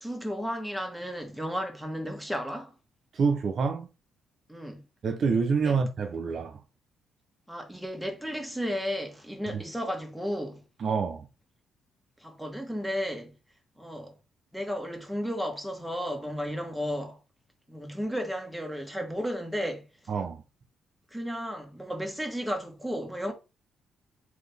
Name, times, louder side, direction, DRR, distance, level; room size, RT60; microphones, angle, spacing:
voice 1, 0.0-2.7 4.5-4.8 5.6-5.7 7.5-10.6 12.2-13.3 13.8-14.2 14.5-17.2 17.7-19.9 21.1-23.3, equal, ahead, 1.3 m, -33 dB
voice 2, 3.1-3.9 5.0-6.6 10.8-11.3 20.1-20.4, right 5 dB, 55° right, 0.5 m, -27 dB
3.8 x 2.8 x 3.4 m
cardioid pair, 90°, 0 cm